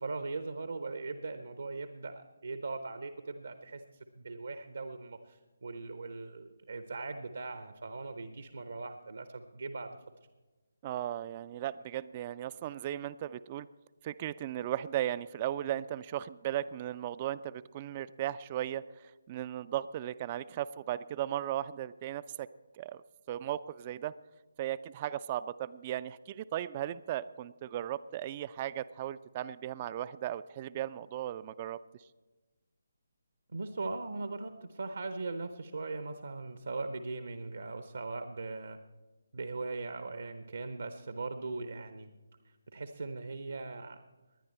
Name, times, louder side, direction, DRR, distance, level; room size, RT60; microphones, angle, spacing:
voice 1, 0.0-3.8 4.2-10.0 33.5-38.8 39.3-42.1 42.7-44.0, right 3 dB, 60° right, 9 dB, 0.8 m, -39 dB
voice 2, 10.8-13.7 14.0-22.5 22.7-23.0 23.3-24.1 24.6-31.8, right 12 dB, 25° right, 17 dB, 0.3 m, -36 dB
19.5 x 10.5 x 4.3 m, 1.2 s
figure-of-eight pair, 145°, 0 cm